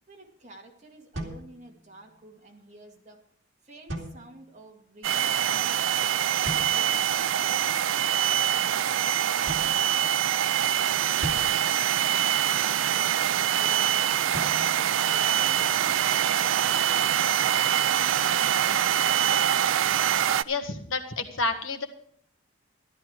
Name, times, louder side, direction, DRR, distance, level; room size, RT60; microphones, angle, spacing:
voice 1, 0.1-3.2 3.6-10.4 10.8-17.8, right 2 dB, 35° right, 1 dB, 2.2 m, -50 dB
sound 1, 1.1-2.2 3.9-4.7 6.4-7.1 9.5-10.5 11.2-12.7 14.3-15.8, right 1 dB, 65° right, 2.4 m, -40 dB
sound 2, 5.0-20.4, right 10 dB, 80° right, 0.4 m, -24 dB
voice 2, 20.4-21.9, left 3 dB, 80° left, 5 dB, 1.6 m, -29 dB
13.5 x 12.5 x 4.8 m, 0.62 s
head